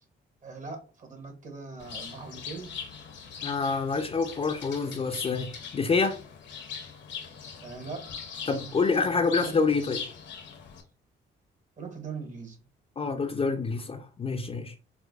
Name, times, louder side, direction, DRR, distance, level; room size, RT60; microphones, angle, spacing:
voice 1, 0.4-2.7 7.6-8.0 8.5-9.6 11.8-12.6, right 4 dB, 40° right, 1.0 m, -41 dB
Bird, 1.8-10.8, left 7 dB, 65° left, 0.7 m, -41 dB
voice 2, 3.4-6.2 8.5-10.0 13.0-14.7, left 4 dB, 30° left, 0.4 m, -27 dB
4.6 x 2.1 x 2.4 m
cardioid pair, 90°, 20 cm